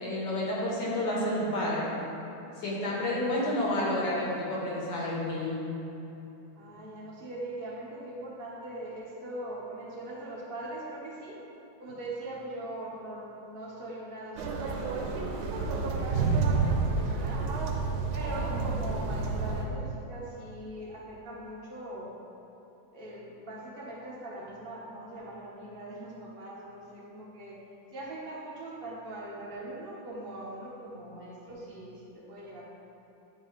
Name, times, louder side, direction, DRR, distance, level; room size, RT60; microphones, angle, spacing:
voice 1, 0.0-1.9 2.6-5.6, left 1 dB, 60° left, -5 dB, 1.7 m, -30 dB
voice 2, 6.6-11.4 11.8-17.5 18.1-22.1 22.9-27.6 27.9-32.6, right 1 dB, 40° right, -5 dB, 0.8 m, -41 dB
sound 1, 14.4-19.6, right 4 dB, 85° right, 1.5 m, -29 dB
8.4 x 4.5 x 3.1 m, 2.9 s
omnidirectional pair, 2.3 m